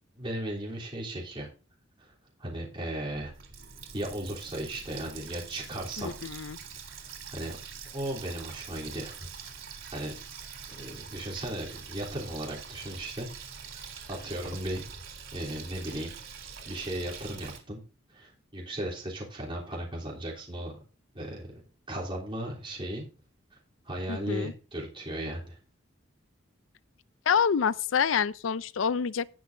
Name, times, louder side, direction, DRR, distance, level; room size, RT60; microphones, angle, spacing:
voice 1, 0.2-1.5 2.0-2.1 2.4-3.3 3.9-6.1 7.3-7.6 7.9-9.2 9.9-10.1 10.7-13.3 13.7-13.8 14.1-14.8 15.3-16.1 16.6-17.8 18.1-20.7 21.1-21.6 21.9-23.1 23.8-25.6, right 1 dB, 25° right, 3.3 m, -36 dB
Water tap faucet, 3.1-17.6, right 6 dB, 90° right, 3.2 m, -44 dB
voice 2, 6.0-6.6 24.1-24.5 27.3-29.3, left 7 dB, 80° left, 0.5 m, -27 dB
18.5 x 6.2 x 2.7 m
head